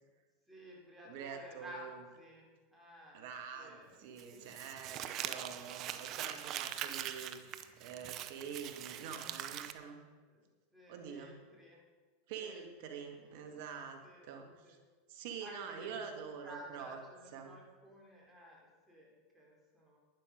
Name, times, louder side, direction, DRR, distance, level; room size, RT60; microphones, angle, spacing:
voice 1, 0.5-2.5 2.7-3.2 3.5-4.7 5.3-5.5 6.5-6.7 10.3-10.5 10.7-11.8 12.4-13.7 14.0-14.8 15.4-20.0, equal, 5° right, -3 dB, 4.4 m, -54 dB
voice 2, 1.0-2.0 3.1-7.4 7.8-10.0 10.9-11.3 12.3-14.8 15.1-17.0 17.3-17.5, right 6 dB, 65° right, 4 dB, 2.0 m, -46 dB
Crumpling crinkling, 4.2-9.7, right 11 dB, 45° right, 0.8 m, -42 dB
11.5 x 10.5 x 5.3 m, 1.4 s
hypercardioid pair, 95°, 0 cm